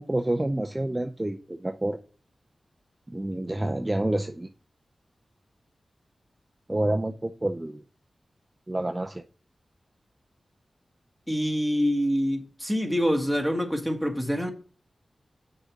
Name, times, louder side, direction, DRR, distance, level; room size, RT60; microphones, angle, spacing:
voice 1, 0.0-2.0 3.1-4.5 6.7-7.8 8.7-9.2, right 1 dB, 20° right, 0.6 m, -28 dB
voice 2, 11.3-14.5, equal, 5° left, 1.6 m, -26 dB
6.2 x 4.9 x 6.5 m
cardioid pair, 55°, 0 cm